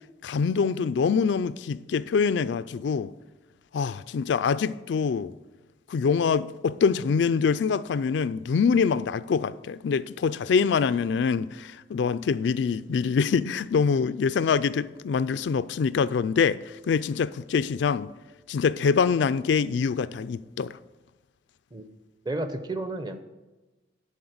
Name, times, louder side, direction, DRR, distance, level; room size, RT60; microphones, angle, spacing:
voice 1, 0.2-3.1 3.7-5.3 5.9-18.1 18.5-20.8, left 6 dB, 80° left, 0.4 m, -25 dB
voice 2, 22.2-23.2, right 2 dB, 25° right, 0.7 m, -31 dB
11.0 x 4.2 x 7.9 m
head